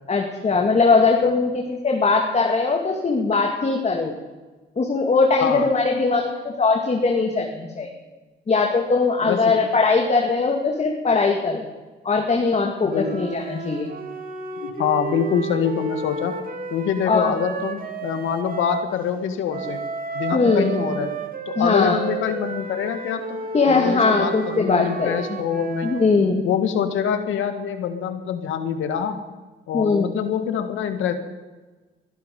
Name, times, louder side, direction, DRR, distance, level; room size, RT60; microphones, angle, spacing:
voice 1, 0.1-4.1 4.8-7.9 8.5-11.6 12.0-13.9 17.1-17.3 20.3-20.7 21.6-22.0 23.5-25.2 25.8-26.5 29.7-30.0, left 4 dB, 35° left, 2 dB, 2.3 m, -20 dB
voice 2, 9.2-9.5 12.8-13.2 14.6-16.4 16.7-19.8 20.1-21.2 21.5-26.0 26.4-29.2 29.7-31.1, left 8 dB, 85° left, 8 dB, 1.9 m, -25 dB
sound 1, 12.9-18.9 19.5-26.2, right 5 dB, 45° right, 2.4 m, -32 dB
22.0 x 12.0 x 5.4 m, 1.2 s
cardioid pair, 90°, 20 cm